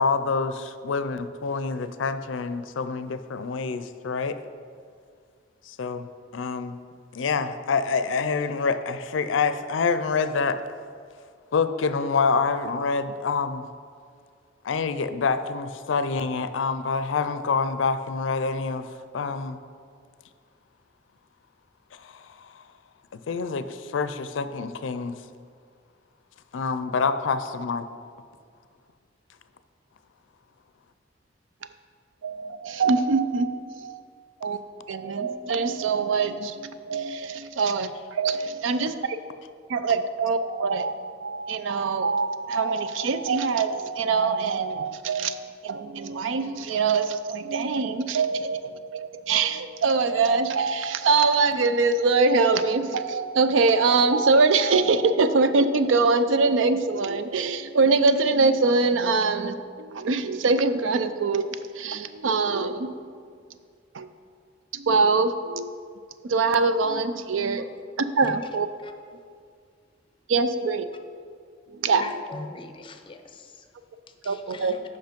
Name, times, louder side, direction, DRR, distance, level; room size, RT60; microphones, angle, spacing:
voice 1, 0.0-4.4 5.7-6.1 6.3-6.8 7.1-10.6 11.5-13.7 14.6-18.9 19.1-19.6 23.1-25.2 26.5-27.8, left 4 dB, 75° left, 11 dB, 0.4 m, -26 dB
voice 2, 32.2-34.0 34.4-34.6 34.9-39.2 39.7-45.4 45.6-62.9 63.9-64.1 64.7-65.7 66.2-67.7 68.0-68.7 70.3-70.9 71.7-72.0 74.2-74.7, right 4 dB, 80° right, 11 dB, 0.4 m, -23 dB
voice 3, 72.0-73.7 74.2-74.8, left 3 dB, 25° left, 6 dB, 0.6 m, -40 dB
8.0 x 5.5 x 5.1 m, 2.2 s
head